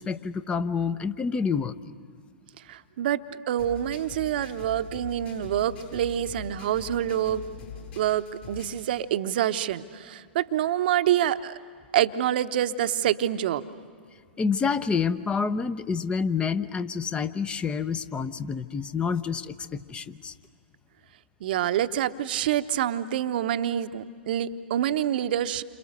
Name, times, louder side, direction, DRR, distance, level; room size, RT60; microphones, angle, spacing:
voice 1, 0.0-1.9 14.4-20.3, left 5 dB, 15° left, 13 dB, 0.8 m, -28 dB
voice 2, 2.7-3.2 3.5-7.4 8.0-11.6 11.9-13.6 21.4-25.6, right 11 dB, 55° right, 11 dB, 0.9 m, -26 dB
sound 1, 3.6-8.9, left 7 dB, 55° left, 7.6 m, -43 dB
29.0 x 27.0 x 6.7 m, 2.1 s
figure-of-eight pair, 110°, 6 cm